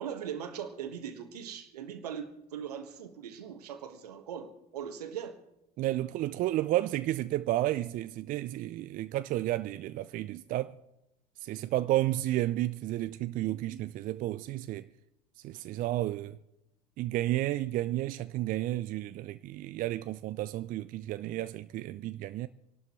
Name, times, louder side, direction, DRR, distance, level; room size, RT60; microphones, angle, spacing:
voice 1, 0.0-5.4, right 8 dB, 80° right, 1.6 m, -40 dB
voice 2, 5.8-10.8 11.4-14.9 15.4-16.4 17.0-22.5, right 15 dB, 45° right, 0.5 m, -32 dB
27.0 x 12.0 x 3.2 m
hypercardioid pair, 75°, 20 cm